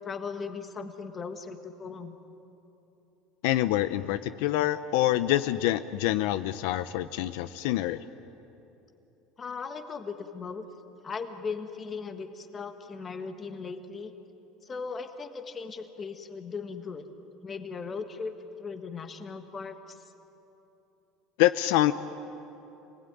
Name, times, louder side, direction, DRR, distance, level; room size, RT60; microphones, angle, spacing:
voice 1, 0.0-2.2 9.4-10.7 11.0-14.1 14.6-17.0 17.4-18.3 18.6-19.9, left 5 dB, 25° left, 7 dB, 1.5 m, -38 dB
voice 2, 3.4-8.0 21.4-21.9, left 14 dB, 80° left, 12 dB, 0.7 m, -26 dB
27.5 x 19.0 x 9.3 m, 3.0 s
cardioid pair, 150°, 0 cm